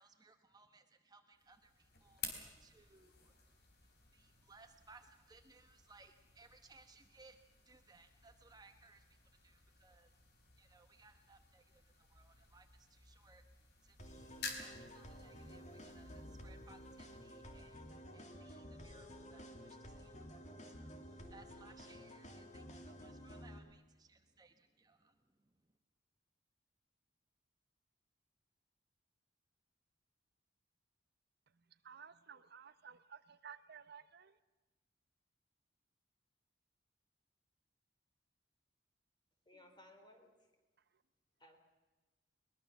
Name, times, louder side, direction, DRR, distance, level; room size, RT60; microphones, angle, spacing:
voice 1, 0.0-3.3 4.1-13.5 13.8-25.8, right 3 dB, 20° right, 6 dB, 1.1 m, -65 dB
sound 1, 1.4-18.3, left 4 dB, 60° left, 4.0 m, -54 dB
sound 2, 14.0-23.6, equal, 40° left, 2.6 m, -53 dB
voice 2, 31.8-34.3, right 7 dB, 60° right, 13 dB, 0.8 m, -55 dB
voice 3, 39.5-40.5 41.4-41.6, left 1 dB, 25° left, 5 dB, 3.8 m, -61 dB
22.5 x 20.5 x 7.1 m, 1.2 s
head